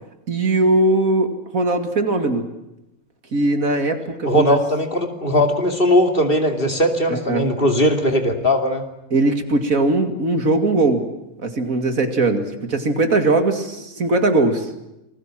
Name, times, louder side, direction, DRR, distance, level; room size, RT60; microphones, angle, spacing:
voice 1, 0.3-2.5 3.3-4.6 7.1-7.5 9.1-11.1 11.4-14.7, right 2 dB, 70° right, 7 dB, 2.8 m, -20 dB
voice 2, 4.2-8.8, left 1 dB, 40° left, 5 dB, 2.9 m, -19 dB
28.0 x 21.0 x 7.6 m, 0.91 s
omnidirectional pair, 1.5 m